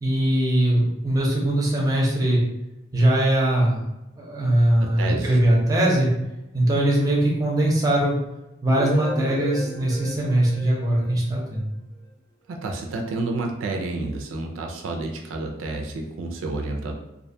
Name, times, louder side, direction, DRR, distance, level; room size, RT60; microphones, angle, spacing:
voice 1, 0.0-2.4 2.9-3.8 4.2-6.1 6.5-8.2 8.6-11.7, right 1 dB, 20° right, -3 dB, 0.5 m, -21 dB
voice 2, 4.8-5.4 12.5-16.9, right 2 dB, 80° right, 2 dB, 0.4 m, -30 dB
sound 1, 8.7-11.6, right 1 dB, 25° left, 0.7 m, -34 dB
2.5 x 2.2 x 2.6 m, 0.94 s
head